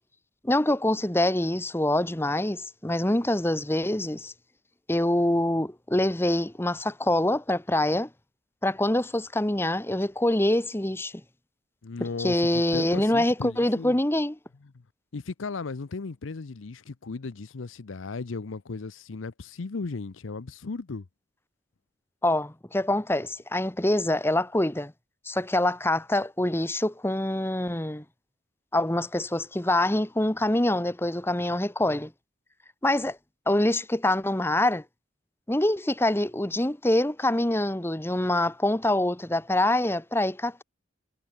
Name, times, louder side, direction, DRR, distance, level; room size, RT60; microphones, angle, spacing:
voice 1, 0.4-4.3 4.9-8.1 8.6-11.1 12.0-14.4 22.2-24.9 25.2-28.0 28.7-32.1 32.8-33.2 33.5-34.8 35.5-40.6, left 1 dB, 10° left, 1.1 m, -25 dB
voice 2, 11.8-14.0 14.7-14.8 15.1-21.1, left 4 dB, 80° left, 0.7 m, -36 dB
head